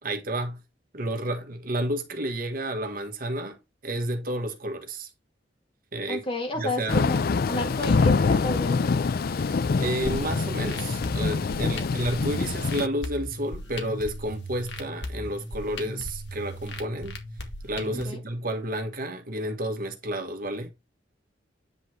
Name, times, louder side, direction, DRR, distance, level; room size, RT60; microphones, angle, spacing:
voice 1, 0.0-0.6 0.9-5.1 5.9-6.2 6.5-7.1 9.3-17.2 17.6-20.7, right 1 dB, 50° right, 1.7 m, -31 dB
voice 2, 6.1-8.9 11.6-11.9 17.9-18.2, left 1 dB, 30° left, 2.2 m, -32 dB
Thunder / Rain, 6.9-12.9, left 4 dB, 55° left, 0.4 m, -25 dB
sound 1, 10.0-18.0, left 1 dB, 70° left, 2.2 m, -37 dB
9.7 x 4.1 x 4.6 m
head